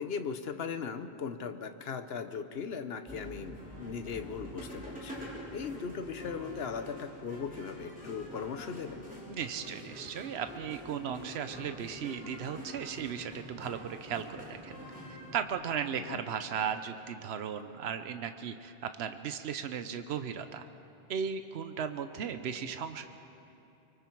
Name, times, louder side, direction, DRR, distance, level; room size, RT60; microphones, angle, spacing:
voice 1, 0.0-5.2 5.5-9.1 15.9-16.2, left 6 dB, 75° left, 10 dB, 1.1 m, -38 dB
sound 1, 3.1-15.5, equal, 10° right, 4.6 m, -46 dB
voice 2, 9.3-14.7 15.3-20.6 21.1-23.0, right 7 dB, 85° right, 9 dB, 1.0 m, -36 dB
24.0 x 24.0 x 4.6 m, 2.8 s
omnidirectional pair, 1.1 m